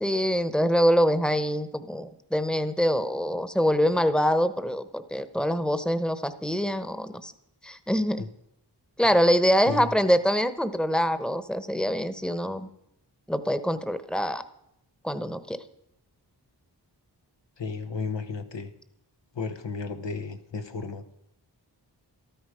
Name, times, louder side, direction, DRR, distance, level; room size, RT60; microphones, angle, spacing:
voice 1, 0.0-7.3 7.6-8.2 9.0-12.7 13.3-14.4 15.0-15.6, equal, ahead, 12 dB, 1.0 m, -24 dB
voice 2, 17.6-18.7 19.3-21.0, left 4 dB, 85° left, 8 dB, 1.2 m, -34 dB
14.0 x 13.0 x 5.0 m, 0.78 s
wide cardioid pair, 55°, 42 cm